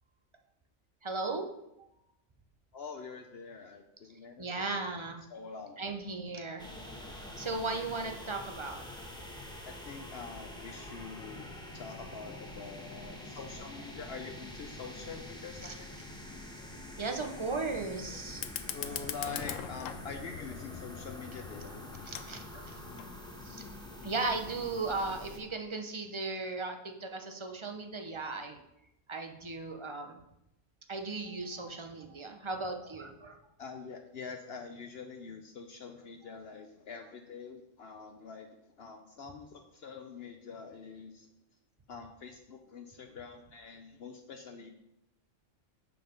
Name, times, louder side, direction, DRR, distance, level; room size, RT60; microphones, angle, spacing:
voice 1, 1.0-1.5 4.4-5.2 5.8-6.7 7.4-8.8 15.6-15.7 17.0-18.4 22.1-22.8 23.4-23.6 24.0-28.6 29.1-30.2 30.9-33.4, right 3 dB, 30° right, 4 dB, 0.7 m, -36 dB
voice 2, 2.7-4.5 5.3-5.8 9.6-16.0 18.7-22.1 33.6-38.5 38.8-41.3 41.9-44.7, left 5 dB, 60° left, 5 dB, 0.8 m, -45 dB
sound 1, 6.6-25.4, left 1 dB, 5° left, 1.2 m, -46 dB
Fire, 18.3-23.3, left 10 dB, 85° left, 1.0 m, -42 dB
7.7 x 5.7 x 5.1 m, 0.84 s
omnidirectional pair, 1.3 m